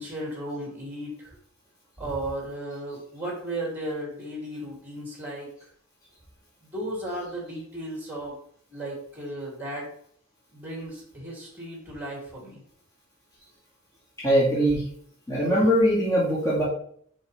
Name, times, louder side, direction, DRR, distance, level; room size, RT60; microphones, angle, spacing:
voice 1, 0.0-1.4 2.0-5.5 6.6-8.4 8.7-9.9 10.5-12.6, right 1 dB, 10° right, -3 dB, 2.8 m, -35 dB
voice 2, 14.2-14.8 15.3-16.6, equal, 15° left, -8 dB, 2.2 m, -21 dB
7.2 x 5.3 x 3.4 m, 0.62 s
head